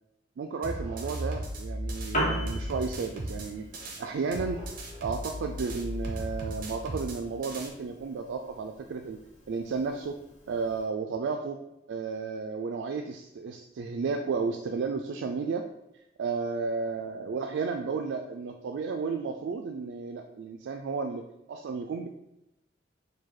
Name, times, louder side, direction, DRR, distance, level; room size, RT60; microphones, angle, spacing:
voice 1, 0.4-3.7 4.0-4.6 5.0-9.2 9.5-10.2 10.5-11.6 11.9-15.7 16.2-21.2 21.5-22.1, right 4 dB, 80° right, 4 dB, 0.3 m, -33 dB
sound 1, 0.6-4.0 4.3-7.7, equal, 50° right, 0.8 m, -36 dB
Piano, 1.9-10.9, equal, 40° left, 1.0 m, -40 dB
4.9 x 2.2 x 4.1 m, 0.86 s
head